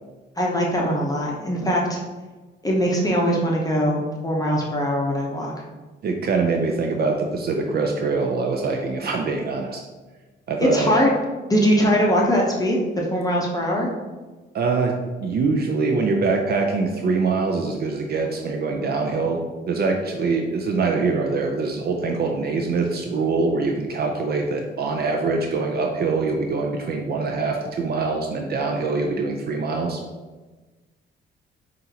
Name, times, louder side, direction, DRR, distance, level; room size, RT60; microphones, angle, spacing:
voice 1, 0.4-2.0 2.6-5.5 10.6-11.1 11.5-13.9, equal, 20° left, -2 dB, 0.7 m, -21 dB
voice 2, 6.0-9.8 10.5-11.0 14.5-14.9 15.2-30.0, right 4 dB, 55° right, 2 dB, 0.5 m, -24 dB
5.5 x 2.5 x 2.8 m, 1.3 s
cardioid pair, 90°, 20 cm